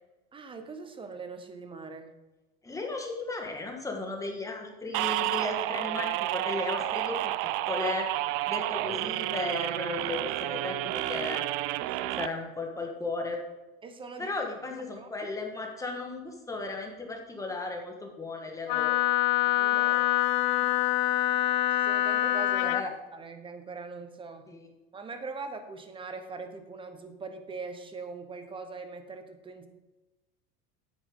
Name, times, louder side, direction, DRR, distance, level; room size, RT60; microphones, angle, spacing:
voice 1, 0.3-2.1 10.5-10.6 11.8-12.2 13.8-14.3 14.9-15.3 19.5-20.1 20.6-20.8 21.3-21.4 21.7-22.8 23.1-24.5 24.9-29.7, right 4 dB, 15° right, 8 dB, 0.9 m, -42 dB
voice 2, 2.6-8.1 8.5-11.5 12.2-13.4 14.2-19.0 22.6-22.9 24.5-24.7, left 3 dB, 10° left, 2 dB, 1.4 m, -35 dB
sound 1, 4.9-12.3, right 15 dB, 70° right, 0.5 m, -30 dB
Wind instrument woodwind instrument, 18.7-22.9, left 16 dB, 55° left, 0.4 m, -25 dB
9.5 x 8.2 x 3.7 m, 1.1 s
supercardioid pair, 135°, 31 cm